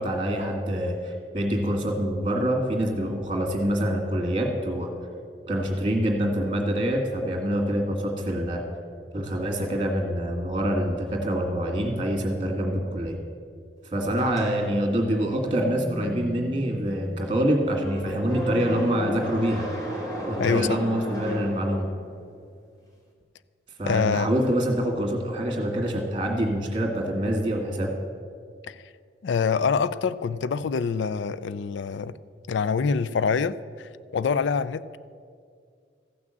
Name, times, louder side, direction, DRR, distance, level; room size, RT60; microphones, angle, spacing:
voice 1, 0.0-4.9 5.5-8.6 9.1-13.2 13.9-19.7 20.2-21.9 23.8-27.9, right 1 dB, 25° right, 1.9 m, -26 dB
sound 1, 14.1-22.2, equal, 20° left, 1.6 m, -34 dB
voice 2, 20.4-20.8 23.9-24.3 28.6-28.8 29.2-32.2 32.5-35.0, left 5 dB, 90° left, 0.4 m, -25 dB
14.5 x 6.1 x 7.7 m
head